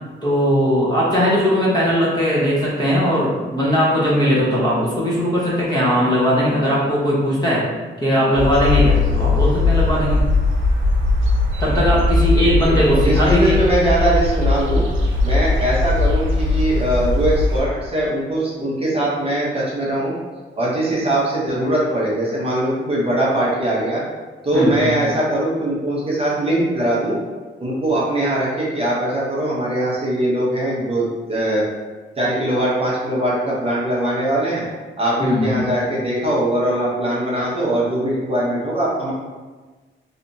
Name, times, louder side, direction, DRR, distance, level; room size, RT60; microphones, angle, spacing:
voice 1, 0.2-7.7 8.0-10.2 11.6-13.6 24.5-24.9 35.2-35.7, equal, 20° left, -7 dB, 1.0 m, -19 dB
sound 1, 8.3-17.6, left 2 dB, 75° right, 0.6 m, -19 dB
voice 2, 12.6-14.8 15.2-20.1 20.6-24.0 24.4-27.2 27.6-31.7 32.2-34.6 35.0-39.1, right 1 dB, 30° right, -6 dB, 0.7 m, -21 dB
3.3 x 2.7 x 2.7 m, 1.3 s
wide cardioid pair, 125°, 21 cm